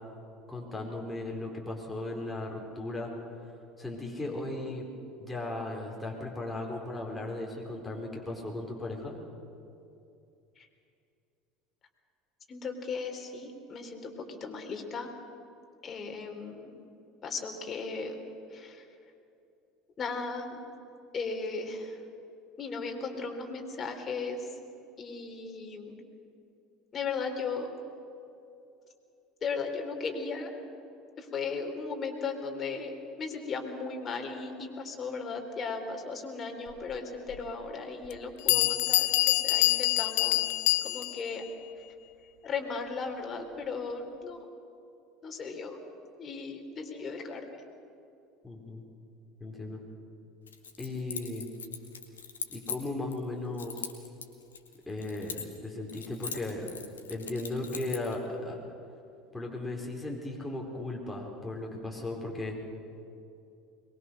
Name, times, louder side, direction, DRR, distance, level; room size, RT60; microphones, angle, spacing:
voice 1, 0.5-3.1 3.8-4.9 5.2-9.1 38.5-38.6 48.4-48.8 49.4-49.8 50.8-51.5 52.5-53.9 54.9-56.7 57.1-58.6 59.3-62.6, left 2 dB, 10° left, -2 dB, 4.5 m, -36 dB
voice 2, 12.5-15.1 15.8-16.8 17.2-18.2 18.5-18.9 20.0-20.6 21.1-22.0 22.6-24.6 25.0-26.0 26.9-27.7 29.4-30.5 31.2-40.5 40.8-41.4 41.8-41.9 42.4-44.4 45.2-45.8 46.2-47.6, left 4 dB, 35° left, 3 dB, 3.7 m, -36 dB
Bell, 37.3-37.4 38.1-38.2 38.5-41.3, left 21 dB, 65° left, 0.5 m, -26 dB
Keys jangling, 50.5-53.2 53.6-55.6 55.9-58.1, left 6 dB, 80° left, 1.9 m, -40 dB
23.0 x 21.5 x 6.5 m, 2.6 s
figure-of-eight pair, 70°, 0 cm